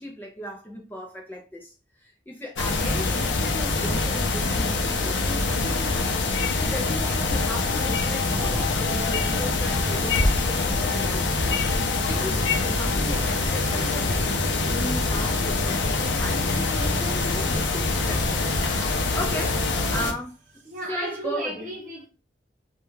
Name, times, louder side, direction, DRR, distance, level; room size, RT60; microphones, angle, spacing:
voice 1, 0.0-11.5 12.0-14.3 14.7-18.4 19.1-19.6 19.9-20.4 20.8-21.7, left 1 dB, 10° left, 0.4 m, -36 dB
sound 1, 2.6-20.1, left 3 dB, 85° left, 0.5 m, -24 dB
sound 2, 3.7-19.9, equal, 5° right, 0.7 m, -40 dB
sound 3, 12.1-20.9, right 2 dB, 85° right, 0.8 m, -43 dB
voice 2, 20.6-22.1, right 1 dB, 45° right, 0.9 m, -33 dB
2.3 x 2.2 x 3.1 m
head